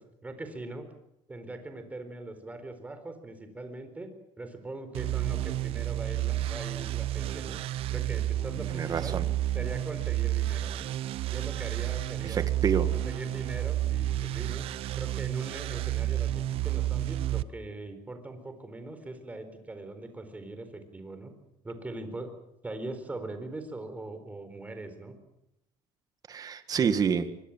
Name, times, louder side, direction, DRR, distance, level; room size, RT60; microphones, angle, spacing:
voice 1, 0.2-0.9 1.3-7.6 7.9-9.2 9.5-10.9 11.3-12.5 12.9-14.7 15.0-21.3 21.6-22.3 22.6-25.1 26.8-26.9, right 2 dB, 15° right, 8 dB, 4.3 m, -41 dB
sound 1, 4.9-17.4, right 13 dB, 60° right, 0.8 m, -30 dB
voice 2, 8.8-9.3 12.2-12.9 26.3-27.3, right 6 dB, 35° right, 10 dB, 1.9 m, -28 dB
25.0 x 21.0 x 7.4 m, 0.86 s
cardioid pair, 130°, 11 cm